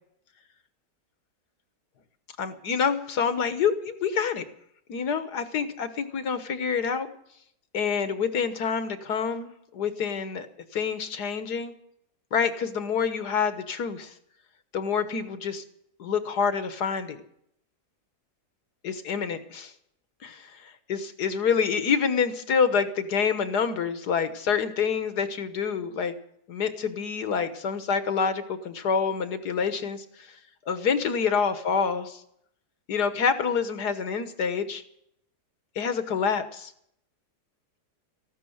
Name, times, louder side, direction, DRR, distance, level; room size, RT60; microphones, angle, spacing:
voice 1, 2.4-4.5 4.9-7.1 7.7-10.5 10.7-11.7 12.3-14.1 14.7-15.6 16.0-17.2 18.8-19.7 20.2-26.1 26.5-30.3 30.7-32.2 32.9-34.8 35.8-36.7, left 6 dB, 75° left, 10 dB, 1.9 m, -27 dB
14.5 x 12.5 x 8.0 m, 0.72 s
omnidirectional pair, 1.7 m